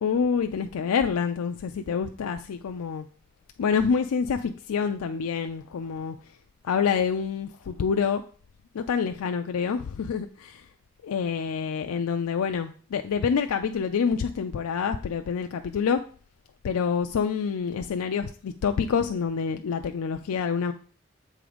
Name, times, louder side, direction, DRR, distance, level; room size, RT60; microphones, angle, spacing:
voice 1, 0.0-3.1 3.6-6.2 6.6-8.2 8.7-10.6 11.0-16.0 16.6-20.7, left 6 dB, 90° left, 6 dB, 0.4 m, -27 dB
7.7 x 3.7 x 5.1 m, 0.43 s
head